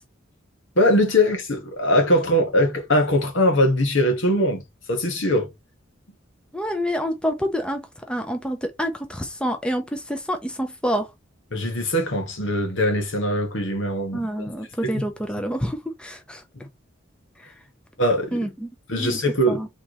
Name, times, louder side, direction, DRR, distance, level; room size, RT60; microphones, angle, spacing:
voice 1, 0.7-4.6 4.9-5.5 11.5-14.3 14.8-15.1 16.5-16.7 18.0-18.5 18.9-19.6, left 1 dB, 70° left, 1.6 m, -21 dB
voice 2, 6.5-11.1 14.1-16.4 17.4-17.5 18.3-18.7 19.0-19.2 19.5-19.7, equal, 5° left, 0.6 m, -27 dB
4.4 x 3.6 x 3.1 m
head